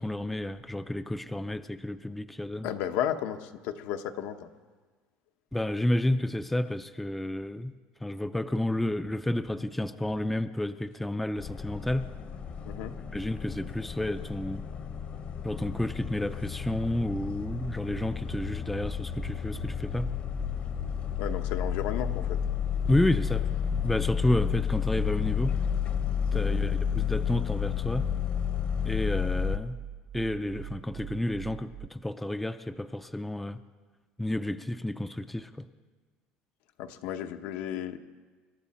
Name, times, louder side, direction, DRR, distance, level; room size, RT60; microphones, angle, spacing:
voice 1, 0.0-2.7 5.5-7.7 8.0-12.1 13.1-14.6 15.4-20.1 22.9-23.5 23.7-25.6 26.3-28.1 28.8-29.8 30.1-33.6 34.2-35.7, left 1 dB, 5° left, 11 dB, 0.4 m, -30 dB
voice 2, 2.6-4.5 12.6-13.0 21.2-22.4 26.3-26.6 36.8-38.0, left 10 dB, 75° left, 7 dB, 1.0 m, -33 dB
sound 1, 11.4-29.6, left 8 dB, 35° left, 0.9 m, -31 dB
sound 2, 17.0-31.9, right 13 dB, 65° right, 0.4 m, -43 dB
25.5 x 13.0 x 4.2 m, 1.4 s
cardioid pair, 150°, 4 cm